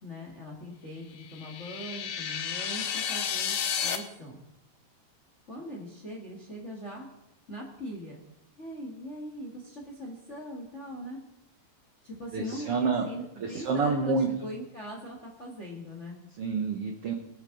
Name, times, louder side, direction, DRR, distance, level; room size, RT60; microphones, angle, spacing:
voice 1, 0.0-3.6 3.8-4.4 5.5-7.1 7.5-8.2 8.6-11.2 12.0-16.3, equal, 30° left, 0 dB, 1.4 m, -41 dB
sound 1, 1.2-4.0, left 8 dB, 80° left, 2.8 m, -32 dB
voice 2, 12.3-13.1 13.4-14.3 16.4-17.1, right 4 dB, 65° right, 3 dB, 1.4 m, -28 dB
23.0 x 8.9 x 3.9 m, 0.85 s
omnidirectional pair, 4.2 m